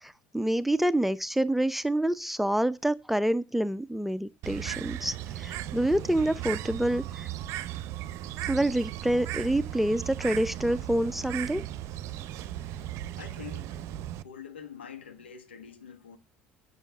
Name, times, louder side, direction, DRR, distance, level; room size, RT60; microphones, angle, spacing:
voice 1, 0.0-7.3 8.4-11.6, right 1 dB, 5° right, 0.6 m, -27 dB
Bird, 4.4-14.2, right 13 dB, 55° right, 0.7 m, -37 dB
voice 2, 12.3-12.9 13.2-13.8 14.2-16.2, left 7 dB, 80° left, 1.6 m, -46 dB
9.1 x 6.4 x 7.3 m
figure-of-eight pair, 65°, 6 cm